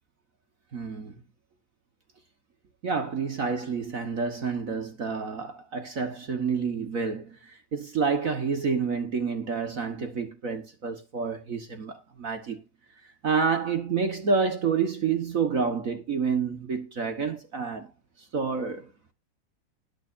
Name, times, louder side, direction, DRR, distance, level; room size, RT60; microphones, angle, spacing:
voice 1, 0.7-1.2 2.8-12.6 13.0-17.9 18.2-18.9, right 5 dB, 55° right, 0.9 m, -29 dB
19.5 x 6.8 x 2.6 m
omnidirectional pair, 3.5 m